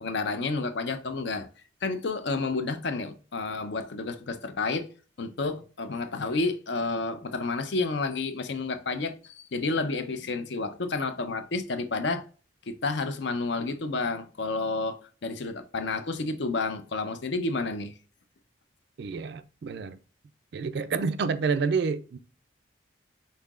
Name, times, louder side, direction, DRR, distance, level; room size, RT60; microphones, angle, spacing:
voice 1, 0.0-1.5 1.8-4.9 5.2-12.2 12.7-17.9, left 3 dB, 60° left, 0.5 m, -30 dB
voice 2, 19.0-20.0 20.5-22.2, right 5 dB, 55° right, 0.3 m, -28 dB
5.6 x 3.6 x 2.4 m
head